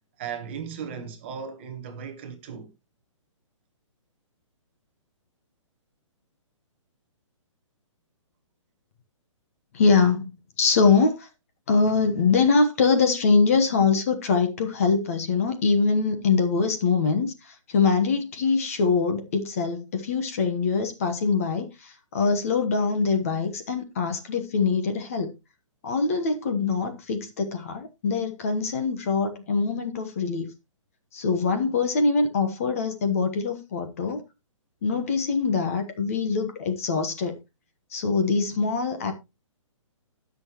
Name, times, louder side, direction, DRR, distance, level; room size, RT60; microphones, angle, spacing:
voice 1, 0.2-2.7, right 7 dB, 20° right, 1.1 m, -36 dB
voice 2, 9.7-10.3 10.6-11.3 11.7-25.3 25.8-30.5 31.1-34.2 34.8-37.4 37.9-39.1, left 4 dB, 25° left, 1.1 m, -23 dB
17.5 x 6.3 x 2.9 m
hypercardioid pair, 180°, 17 cm